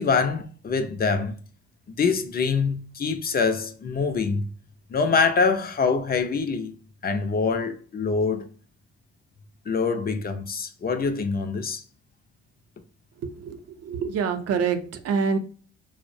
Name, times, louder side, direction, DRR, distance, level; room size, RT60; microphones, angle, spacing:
voice 1, 0.0-1.3 2.0-4.4 4.9-6.7 7.0-8.5 9.7-11.8, left 5 dB, 30° left, 0.4 m, -24 dB
voice 2, 13.2-15.4, right 6 dB, 55° right, 0.5 m, -26 dB
2.6 x 2.0 x 2.5 m
cardioid pair, 90°, 30 cm